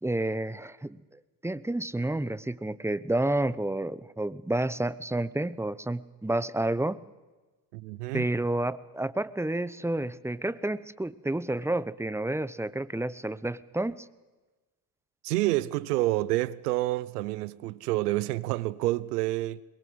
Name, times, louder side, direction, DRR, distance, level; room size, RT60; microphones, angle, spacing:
voice 1, 0.0-1.0 1.4-7.0 8.1-14.1, right 1 dB, 5° right, 0.9 m, -30 dB
voice 2, 7.7-8.3 15.2-19.6, right 17 dB, 90° right, 0.8 m, -28 dB
22.0 x 21.0 x 8.0 m
hypercardioid pair, 55°, 45 cm